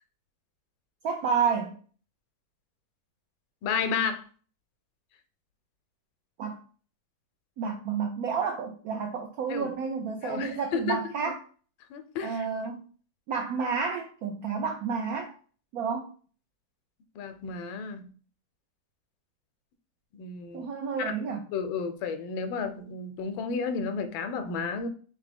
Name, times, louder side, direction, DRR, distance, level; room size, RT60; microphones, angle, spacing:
voice 1, 1.0-1.8 6.4-6.6 7.6-11.4 12.2-12.8 13.3-15.3 15.7-16.1 20.5-21.5, right 6 dB, 90° right, 4 dB, 0.7 m, -30 dB
voice 2, 3.6-4.2 9.5-9.7 10.2-11.0 11.9-12.4 17.2-18.1 20.2-20.7 21.0-21.1 21.5-24.9, left 5 dB, 85° left, 9 dB, 1.3 m, -32 dB
3.6 x 2.8 x 3.4 m, 0.42 s
omnidirectional pair, 2.1 m